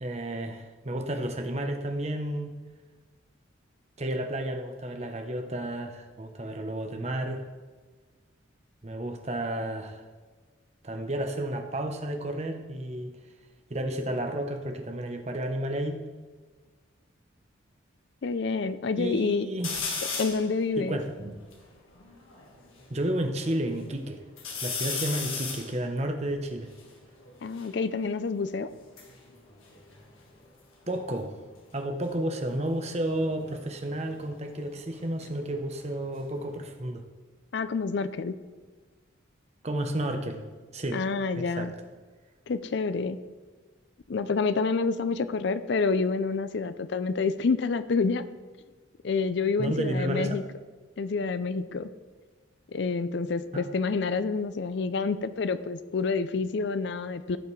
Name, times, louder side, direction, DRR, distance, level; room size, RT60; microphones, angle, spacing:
voice 1, 0.0-2.6 4.0-7.4 8.8-10.0 10.8-13.1 13.7-16.0 19.0-19.8 20.8-21.4 22.9-24.2 24.6-26.7 30.9-31.4 31.7-37.0 39.6-40.4 40.7-41.0 41.4-41.7 49.6-50.4 53.5-53.6, right 1 dB, 30° right, 5 dB, 0.8 m, -32 dB
voice 2, 18.2-19.5 20.2-21.0 27.4-28.7 37.5-38.3 40.9-41.7 42.5-43.2 44.1-48.2 49.0-50.4 51.0-51.9 52.7-57.4, left 4 dB, 55° left, 13 dB, 0.4 m, -28 dB
sound 1, 19.6-20.5 21.0-21.1 21.3-22.9 23.4-24.0 24.4-27.7 28.7-30.6 30.9-31.3 32.9-35.5 35.9-36.7, left 4 dB, 85° left, 1.7 m, -37 dB
15.0 x 5.7 x 3.2 m, 1.4 s
head